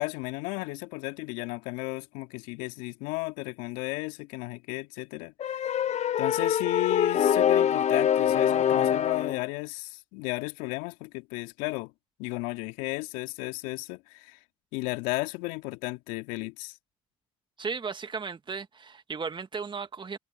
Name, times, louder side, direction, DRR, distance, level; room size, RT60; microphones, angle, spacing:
voice 1, 0.0-5.8 6.2-11.9 12.2-14.4 14.7-16.8, left 24 dB, 75° left, 2.4 m, -34 dB
sound 1, 5.4-9.4, left 9 dB, 55° left, 1.1 m, -24 dB
voice 2, 17.6-20.2, right 5 dB, 35° right, 2.0 m, -35 dB
hypercardioid pair, 45°, 14 cm